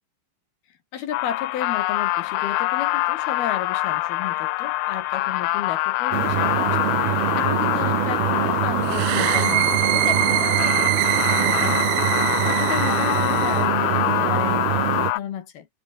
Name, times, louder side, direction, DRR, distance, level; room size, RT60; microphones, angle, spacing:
voice 1, 0.9-10.9 11.3-15.7, left 9 dB, 60° left, 3.5 m, -33 dB
sound 1, 1.1-15.2, left 19 dB, 85° left, 3.1 m, -25 dB
sound 2, 6.1-15.1, right 12 dB, 65° right, 2.9 m, -25 dB
sound 3, 8.8-13.7, right 21 dB, 80° right, 2.5 m, -24 dB
omnidirectional pair, 5.5 m